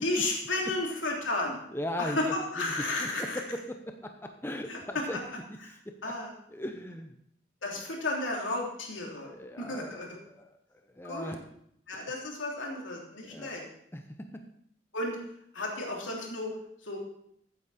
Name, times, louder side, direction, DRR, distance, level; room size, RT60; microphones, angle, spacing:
voice 1, 0.0-1.6 2.0-3.4 6.0-6.3 7.6-9.3 9.6-10.1 11.0-11.4 11.9-13.6 14.9-15.2 15.5-16.5 16.8-17.0, left 2 dB, 90° left, -1 dB, 3.2 m, -32 dB
voice 2, 1.7-5.2 5.7-6.1 6.5-7.2 7.8-8.0 9.2-11.4 11.9-12.0 13.2-13.5 13.9-14.4, left 1 dB, 10° left, 5 dB, 0.7 m, -39 dB
15.0 x 8.7 x 4.2 m, 0.69 s
head